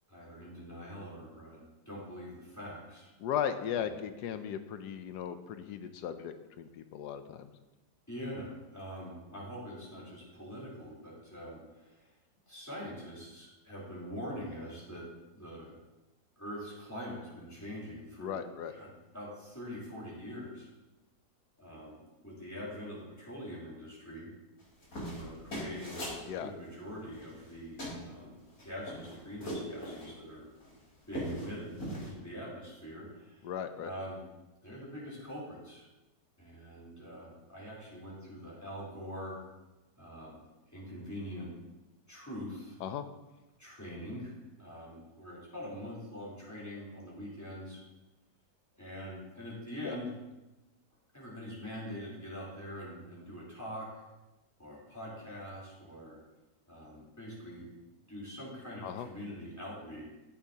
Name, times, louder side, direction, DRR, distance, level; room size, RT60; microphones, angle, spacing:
voice 1, 0.1-1.6 1.9-3.1 3.8-4.0 8.1-12.1 12.5-15.1 15.3-15.7 16.4-18.4 18.7-20.7 21.6-24.3 25.0-28.3 28.6-30.4 31.1-33.5 33.8-34.2 34.6-35.9 36.4-39.4 40.0-40.4 40.7-41.5 42.1-42.8 43.6-44.3 44.6-47.8 48.8-50.1 51.1-53.9 54.6-56.2 56.7-57.7 58.1-60.0, equal, 10° left, -7 dB, 3.4 m, -44 dB
voice 2, 3.2-7.5 18.2-18.7 26.3-26.5 33.4-33.9 42.8-43.0 49.8-50.0 58.8-59.1, left 9 dB, 75° left, 10 dB, 1.2 m, -37 dB
sound 1, 24.6-26.2 27.1-27.5 27.8-28.0 28.5-30.1 30.6-30.7 31.0-31.5 31.8-32.1, equal, 50° left, 4.1 m, -39 dB
14.0 x 7.1 x 2.8 m, 1.1 s
omnidirectional pair, 1.9 m